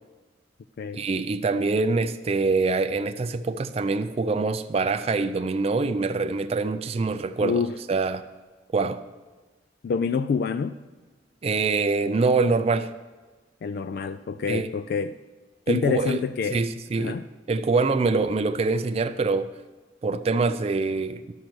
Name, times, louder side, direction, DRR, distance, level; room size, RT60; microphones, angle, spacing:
voice 1, 0.9-7.6 7.9-8.2 8.7-9.0 11.4-12.9 14.5-14.7 15.7-16.2 16.5-17.2 17.5-19.5 20.0-21.3, right 3 dB, 35° right, 0.4 m, -24 dB
voice 2, 7.4-7.7 9.8-10.8 13.6-15.2 15.7-16.6 17.0-17.3, left 5 dB, 60° left, 0.3 m, -27 dB
11.5 x 6.5 x 6.0 m
head